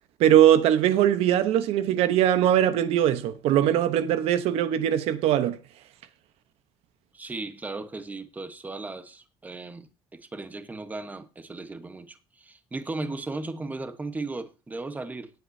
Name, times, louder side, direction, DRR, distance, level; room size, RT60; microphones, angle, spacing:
voice 1, 0.2-5.6, right 11 dB, 80° right, 0.9 m, -21 dB
voice 2, 7.1-15.3, right 3 dB, 15° right, 1.1 m, -36 dB
18.5 x 7.9 x 2.7 m
cardioid pair, 130°, 10 cm